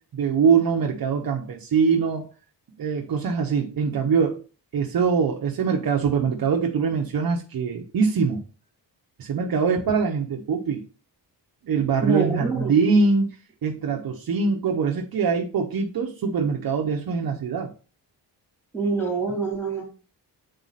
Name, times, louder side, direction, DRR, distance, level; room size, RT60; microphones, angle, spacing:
voice 1, 0.1-2.3 2.8-4.4 4.7-8.4 9.2-10.8 11.6-13.3 13.6-17.7, right 5 dB, 55° right, 1 dB, 0.9 m, -23 dB
voice 2, 12.0-12.8 18.7-19.8, right 4 dB, 5° left, -2 dB, 3.1 m, -25 dB
7.9 x 4.2 x 4.1 m, 0.35 s
wide cardioid pair, 165°, 42 cm